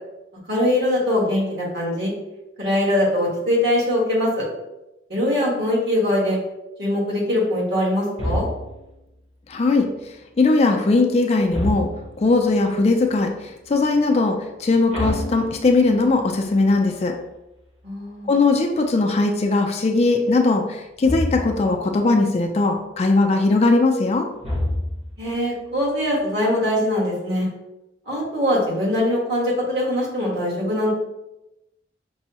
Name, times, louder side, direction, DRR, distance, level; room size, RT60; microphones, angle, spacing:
voice 1, 0.5-2.1 2.6-4.4 5.1-6.4 6.8-8.5 17.8-18.3 25.2-27.5 28.1-30.9, left 1 dB, 65° right, -5 dB, 1.4 m, -22 dB
sound 1, 8.2-8.9 11.5-12.3 14.9-16.1 21.0-21.7 24.4-25.2, left 1 dB, 35° right, 0.9 m, -27 dB
voice 2, 9.5-9.9 10.4-11.9 12.2-13.3 13.7-17.1 18.3-24.3, left 3 dB, 35° left, 3 dB, 0.3 m, -19 dB
5.3 x 2.0 x 2.8 m, 0.95 s
head